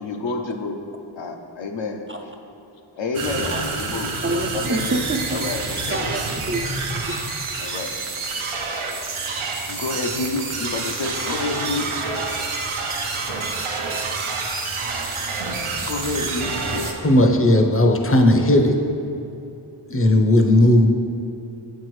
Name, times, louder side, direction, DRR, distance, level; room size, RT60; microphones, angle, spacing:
voice 1, 0.0-0.8 1.2-2.0 3.0-5.0 5.3-6.1 7.6-8.0 9.7-11.9 15.8-17.0, left 3 dB, 65° left, 4 dB, 0.6 m, -29 dB
sound 1, 3.1-16.9, right 4 dB, 85° right, 0.7 m, -28 dB
voice 2, 4.2-6.6 7.1-7.4, right 2 dB, 30° right, 3 dB, 0.4 m, -28 dB
voice 3, 17.0-18.8 19.9-20.9, left 1 dB, 30° left, 3 dB, 0.6 m, -16 dB
7.9 x 4.6 x 3.1 m, 2.9 s
wide cardioid pair, 40°, 48 cm